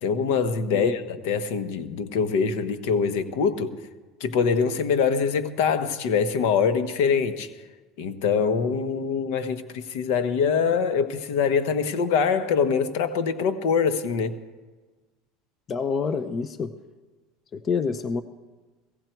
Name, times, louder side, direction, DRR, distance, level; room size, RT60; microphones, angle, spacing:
voice 1, 0.0-3.7 4.2-7.5 8.0-14.3, left 6 dB, 70° left, 1.2 m, -24 dB
voice 2, 15.7-16.7 17.5-18.2, left 5 dB, 30° left, 0.6 m, -27 dB
17.0 x 16.5 x 4.6 m
supercardioid pair, 140°, 0 cm